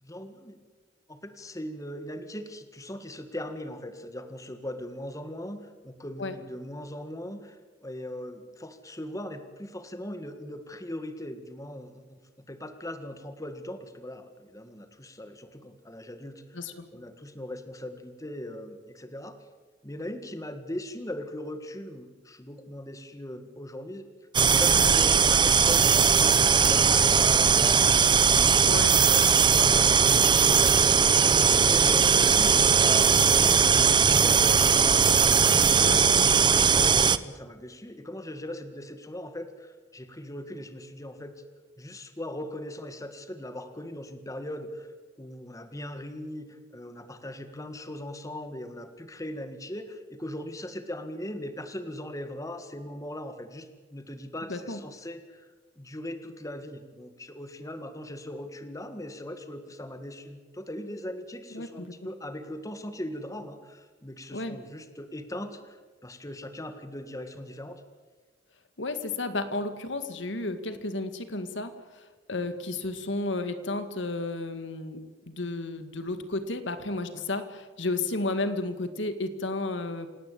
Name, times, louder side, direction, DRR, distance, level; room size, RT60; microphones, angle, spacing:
voice 1, 0.0-0.6 1.1-12.2 12.5-16.6 16.9-19.3 19.8-24.1 24.4-32.5 32.9-34.7 36.7-41.3 41.8-44.9 45.2-55.5 55.8-67.8 77.1-77.2, left 1 dB, 20° left, 8 dB, 1.8 m, -39 dB
voice 2, 16.5-16.9 24.8-24.9 28.7-28.9 35.8-36.3 54.5-54.8 61.5-61.9 64.3-64.6 68.8-80.1, left 2 dB, 80° left, 9 dB, 2.1 m, -33 dB
sound 1, 24.3-37.2, right 6 dB, 25° right, 0.7 m, -20 dB
28.0 x 17.5 x 8.7 m, 1.3 s
head